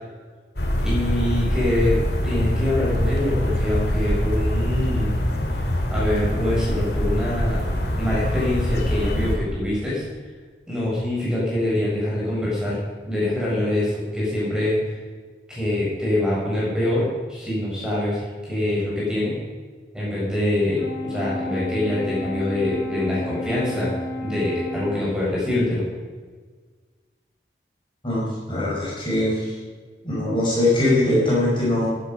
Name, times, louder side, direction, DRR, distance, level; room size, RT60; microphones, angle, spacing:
sound 1, 0.6-9.4, equal, 65° left, 2.2 m, -24 dB
voice 1, 0.8-2.0 2.2-5.1 5.9-7.6 8.0-10.0 10.7-12.8 13.1-14.9 15.5-19.3 19.9-23.9 24.2-25.9, left 1 dB, 5° right, -7 dB, 5.4 m, -24 dB
Brass instrument, 20.8-25.2, left 2 dB, 80° left, 1.8 m, -31 dB
voice 2, 28.0-29.6 30.0-31.9, left 1 dB, 30° left, -6 dB, 5.3 m, -21 dB
15.5 x 10.0 x 5.3 m, 1.5 s
head